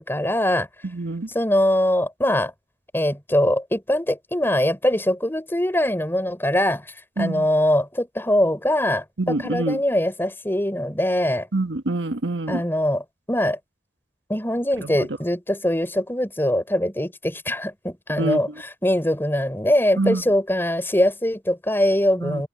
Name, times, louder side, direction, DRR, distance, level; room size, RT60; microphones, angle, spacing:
voice 1, 0.0-0.7 1.3-2.5 2.9-6.8 7.2-11.5 12.5-13.6 14.3-22.5, left 1 dB, 15° left, 4.0 m, -22 dB
voice 2, 0.8-1.3 7.2-7.5 9.2-9.8 11.5-12.6 14.8-14.9 18.2-18.4 20.0-20.2 22.2-22.4, right 2 dB, 85° right, 1.4 m, -25 dB
open air
head